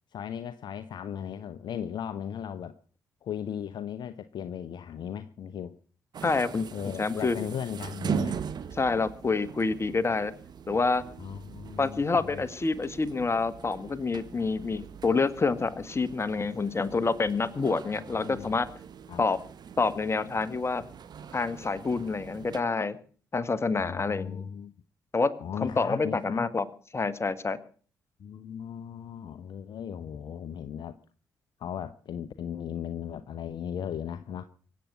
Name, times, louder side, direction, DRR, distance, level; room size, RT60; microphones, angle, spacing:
voice 1, 0.1-2.7 3.2-5.7 6.7-8.4 11.2-12.4 18.1-18.5 19.1-19.2 23.8-24.7 25.4-26.5 28.2-30.9 31.6-34.4, left 8 dB, 55° left, 0.9 m, -37 dB
sound 1, 6.1-22.6, right 7 dB, 50° right, 1.4 m, -41 dB
voice 2, 6.2-6.7 7.0-7.4 8.8-10.3 10.7-11.0 11.8-18.7 19.2-19.4 19.8-20.8 21.3-23.0 23.3-24.5 25.1-26.6 26.9-27.6, left 4 dB, 30° left, 1.6 m, -27 dB
24.0 x 8.5 x 6.2 m
figure-of-eight pair, 40°, 9 cm